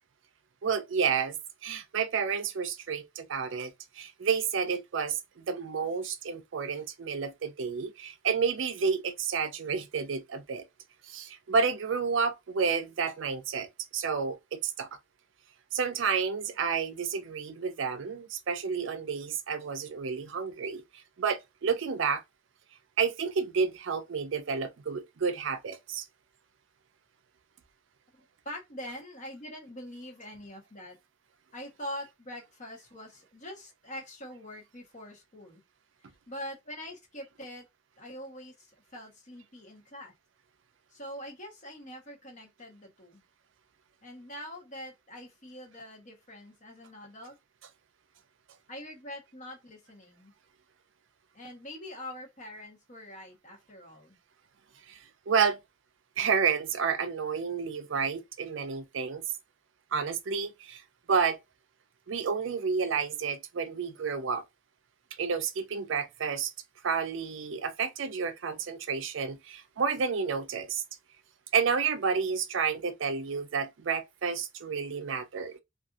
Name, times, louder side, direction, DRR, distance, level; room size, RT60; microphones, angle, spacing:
voice 1, 0.6-10.7 11.1-14.9 15.7-20.8 21.2-22.2 23.0-26.0 54.9-55.0 55.3-55.6 56.2-59.2 59.9-60.8 61.1-61.4 62.1-64.4 65.2-66.5 66.8-70.8 71.5-75.6, right 6 dB, 70° right, 0.5 m, -30 dB
voice 2, 28.4-31.0 31.5-35.6 36.3-37.6 38.0-40.1 40.9-43.2 44.0-47.3 48.7-50.3 51.3-54.2, left 1 dB, 40° left, 1.0 m, -44 dB
2.5 x 2.5 x 2.3 m
head